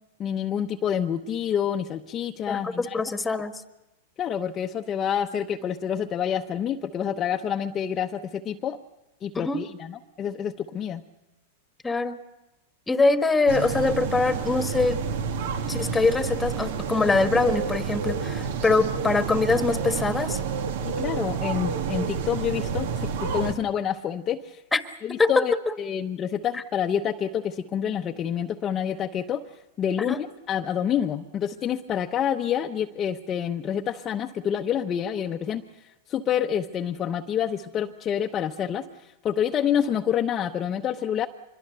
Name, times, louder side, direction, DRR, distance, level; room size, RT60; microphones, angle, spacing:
voice 1, 0.2-3.0 4.2-8.8 9.2-11.0 20.8-24.6 25.0-29.4 29.8-35.6 36.1-41.3, left 9 dB, 30° left, 3 dB, 0.9 m, -28 dB
voice 2, 2.5-3.5 9.3-9.6 11.8-12.2 12.9-15.0 15.7-20.4 24.7-24.8 25.2-25.7 30.1-30.2, left 3 dB, 10° left, 8 dB, 1.5 m, -23 dB
sound 1, 13.5-23.5, right 6 dB, 70° right, 2.0 m, -29 dB
25.5 x 22.5 x 6.8 m, 1.0 s
hypercardioid pair, 125°, 0 cm